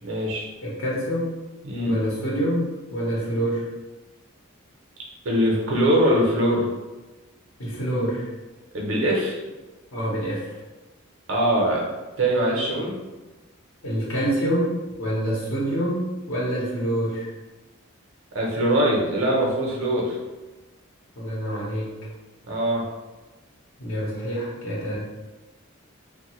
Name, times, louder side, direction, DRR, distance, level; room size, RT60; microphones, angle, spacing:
voice 1, 0.0-0.5 1.6-2.0 5.2-6.7 8.7-9.4 11.3-11.8 12.2-13.0 18.3-20.2 22.5-22.8, right 1 dB, 65° right, -3 dB, 0.7 m, -22 dB
voice 2, 0.6-1.3 1.8-3.7 7.6-8.3 9.9-10.6 13.8-17.3 21.2-22.0 23.8-25.0, equal, 75° left, -6 dB, 0.8 m, -26 dB
3.0 x 2.1 x 3.0 m, 1.2 s
head